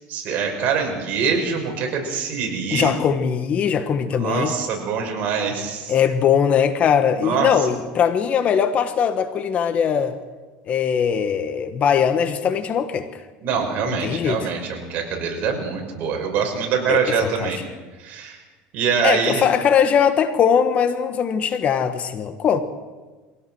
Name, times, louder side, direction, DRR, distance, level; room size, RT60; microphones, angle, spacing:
voice 1, 0.1-2.9 4.2-5.9 7.2-7.5 13.4-17.6 18.0-18.4 18.7-19.4, right 6 dB, 50° right, 2 dB, 5.9 m, -24 dB
voice 2, 2.7-4.5 5.9-10.2 10.7-13.2 13.8-14.5 16.9-17.5 19.0-22.6, left 7 dB, 40° left, 10 dB, 1.4 m, -20 dB
23.5 x 17.0 x 6.4 m, 1.3 s
supercardioid pair, 125°, 4 cm